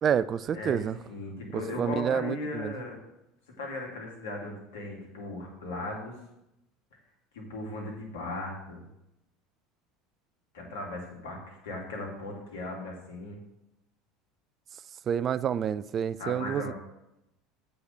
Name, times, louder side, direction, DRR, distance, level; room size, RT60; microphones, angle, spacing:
voice 1, 0.0-1.0 1.5-2.7 15.1-16.7, right 8 dB, 40° right, 17 dB, 0.3 m, -28 dB
voice 2, 0.5-3.0 3.6-6.2 7.3-8.8 10.5-13.4 16.2-16.7, left 2 dB, 70° left, -1 dB, 2.6 m, -37 dB
8.1 x 5.4 x 6.3 m, 0.87 s
figure-of-eight pair, 70°, 0 cm